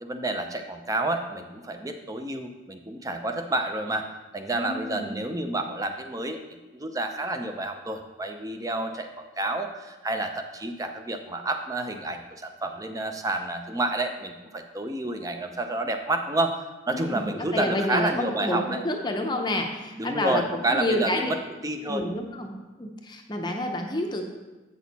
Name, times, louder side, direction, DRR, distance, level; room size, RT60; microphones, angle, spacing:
voice 1, 0.0-4.0 4.3-6.4 6.7-18.8 20.0-21.4 21.6-22.0, right 2 dB, 15° right, 6 dB, 0.5 m, -29 dB
voice 2, 4.5-5.2 16.9-21.3 21.8-22.5 22.8-24.3, left 1 dB, 20° left, 2 dB, 0.6 m, -29 dB
8.4 x 6.3 x 4.1 m, 1.2 s
head